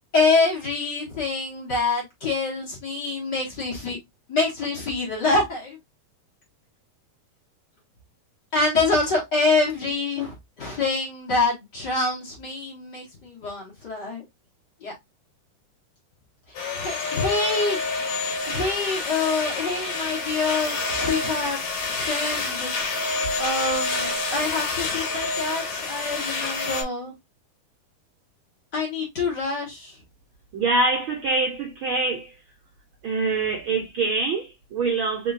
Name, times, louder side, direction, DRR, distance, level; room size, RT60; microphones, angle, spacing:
voice 1, 0.1-4.0 4.3-5.8 8.5-14.2 14.8-14.9 16.7-17.8 18.5-21.6 21.9-22.7 23.4-27.1 28.7-30.0, left 3 dB, 40° left, 1.9 m, -26 dB
sound 1, 16.5-26.8, left 3 dB, 65° left, 2.5 m, -28 dB
voice 2, 30.5-32.3 33.0-35.3, right 3 dB, 85° right, 1.1 m, -24 dB
4.5 x 3.7 x 2.5 m
omnidirectional pair, 3.7 m